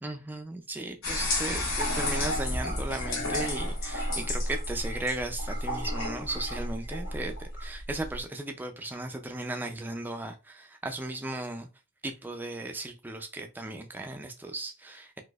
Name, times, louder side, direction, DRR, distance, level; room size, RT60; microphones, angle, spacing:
voice 1, 0.0-11.7 12.0-15.2, right 2 dB, 10° right, 0.3 m, -36 dB
sound 1, 1.0-8.2, left 1 dB, 80° left, 1.2 m, -31 dB
3.9 x 2.6 x 2.3 m
head